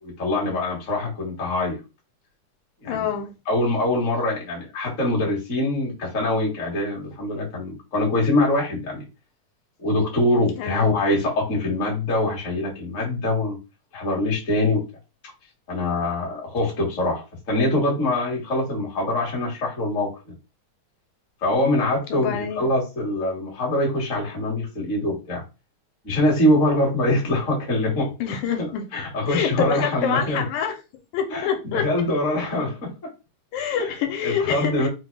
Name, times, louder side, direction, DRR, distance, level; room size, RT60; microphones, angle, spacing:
voice 1, 0.0-1.8 2.8-3.0 3.5-9.0 9.8-13.6 13.9-14.8 15.7-20.1 21.4-25.4 26.0-28.1 28.6-28.7 28.9-30.4 31.3-32.9 33.7-33.9 34.2-34.9, left 1 dB, 35° left, 1.2 m, -23 dB
voice 2, 2.8-3.3 10.6-10.9 22.1-22.6 28.2-28.9 29.3-30.8 31.1-31.9 33.5-34.9, left 8 dB, 85° left, 2.0 m, -26 dB
4.9 x 2.2 x 3.2 m
omnidirectional pair, 3.5 m